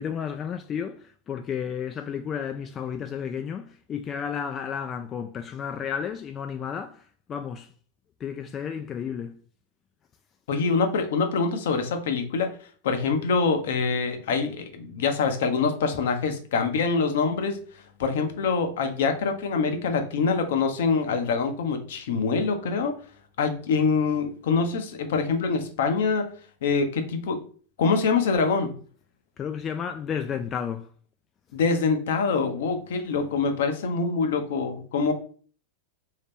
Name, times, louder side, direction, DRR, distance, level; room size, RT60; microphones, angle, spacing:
voice 1, 0.0-7.7 8.2-9.4 29.4-30.9, left 7 dB, 30° left, 0.3 m, -32 dB
voice 2, 10.5-12.5 12.8-17.6 18.0-23.0 23.4-26.3 26.6-27.4 27.8-28.7 31.5-35.1, left 4 dB, 70° left, 0.7 m, -25 dB
3.2 x 2.8 x 3.4 m
hypercardioid pair, 100°, 0 cm